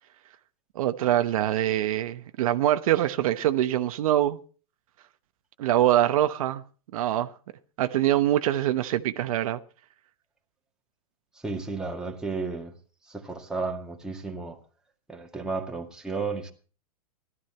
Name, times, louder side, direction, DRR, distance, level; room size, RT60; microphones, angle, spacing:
voice 1, 0.7-4.4 5.6-6.6 6.9-7.3 7.8-9.6, right 13 dB, 65° right, 1.0 m, -24 dB
voice 2, 11.3-12.8 13.0-14.6 15.1-16.5, right 4 dB, 5° right, 2.0 m, -33 dB
17.0 x 12.5 x 4.4 m
hypercardioid pair, 140°, 19 cm